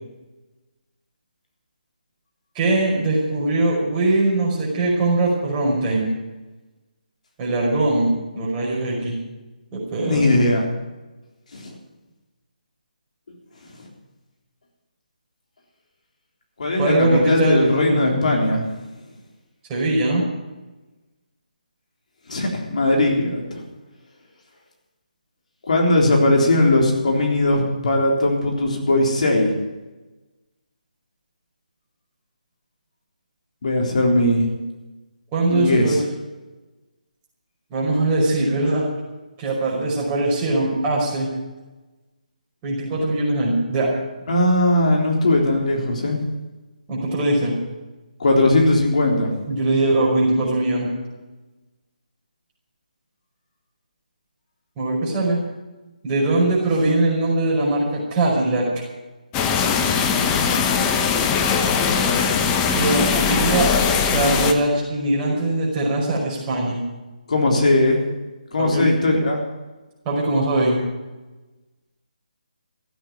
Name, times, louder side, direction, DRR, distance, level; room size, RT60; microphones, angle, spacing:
voice 1, 2.5-6.1 7.4-8.1 8.3-9.1 9.7-10.3 16.7-18.4 19.7-20.2 35.3-36.0 37.7-38.9 39.4-41.3 42.6-43.9 46.9-47.5 49.5-50.9 54.8-55.4 56.0-58.7 62.7-63.7 64.1-66.8 68.6-68.9 70.1-70.8, right 2 dB, 20° right, -4 dB, 5.3 m, -21 dB
voice 2, 10.0-10.6 11.5-11.6 16.6-18.6 22.3-23.6 25.7-29.5 33.6-34.5 35.5-36.0 44.3-46.2 48.2-49.3 67.3-68.0 68.5-69.4, left 1 dB, 55° left, 0 dB, 3.7 m, -19 dB
sound 1, 59.3-64.5, left 6 dB, 15° left, 1.0 m, -20 dB
15.0 x 8.9 x 9.5 m, 1.1 s
figure-of-eight pair, 150°, 5 cm